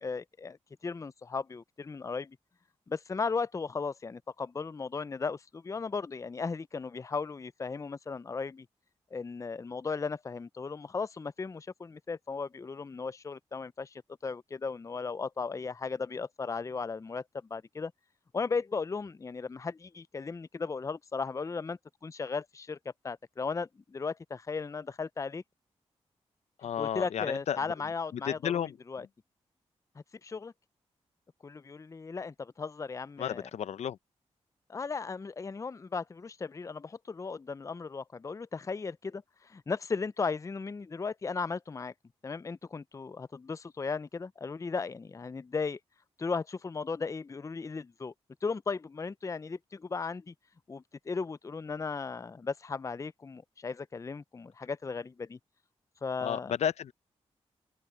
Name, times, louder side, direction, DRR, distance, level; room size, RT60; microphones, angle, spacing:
voice 1, 0.0-0.6 0.8-2.4 2.9-8.7 9.1-17.2 17.5-17.9 18.3-22.8 23.0-25.4 26.8-29.1 30.2-30.5 31.4-33.5 34.7-41.9 42.2-45.8 46.2-48.1 48.4-50.3 50.7-55.4 56.0-56.5, left 4 dB, 30° left, 0.4 m, -36 dB
voice 2, 26.6-27.6 28.1-28.8 33.2-34.0 56.2-56.9, left 9 dB, 80° left, 0.7 m, -32 dB
open air
cardioid pair, 60°, 11 cm